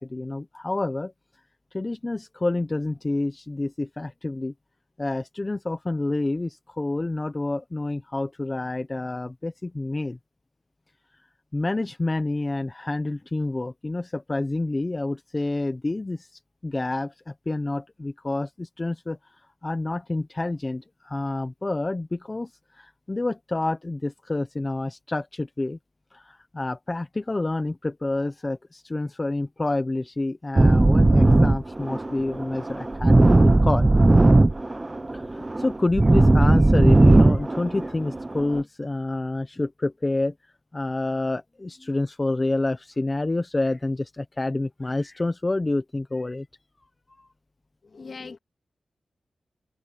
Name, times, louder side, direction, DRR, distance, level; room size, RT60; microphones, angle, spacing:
voice 1, 0.1-1.1 1.7-4.5 5.0-10.2 11.5-16.3 16.6-19.2 19.6-22.5 22.7-25.8 26.1-33.9 35.1-40.3 40.7-46.5 47.2-47.3, left 2 dB, 25° left, 0.8 m, -28 dB
sound 1, 30.6-38.6, right 2 dB, 20° right, 0.5 m, -18 dB
voice 2, 47.8-48.4, left 4 dB, 50° left, 2.1 m, -40 dB
open air
wide cardioid pair, 155°, 0 cm